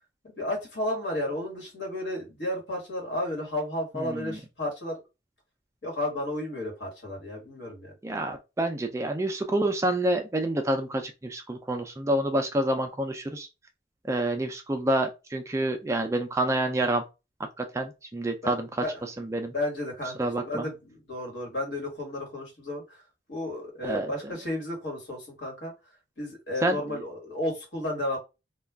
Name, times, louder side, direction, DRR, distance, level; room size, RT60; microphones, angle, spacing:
voice 1, 0.2-5.0 5.8-7.9 18.4-18.5 18.8-23.0 23.3-25.7 26.2-28.2, left 1 dB, 75° left, 1.4 m, -33 dB
voice 2, 4.0-4.4 8.0-13.5 14.0-17.0 17.6-18.8 19.2-19.5 20.2-20.7 23.8-24.1 26.6-27.0, right 1 dB, 15° right, 0.3 m, -28 dB
2.3 x 2.2 x 3.3 m
head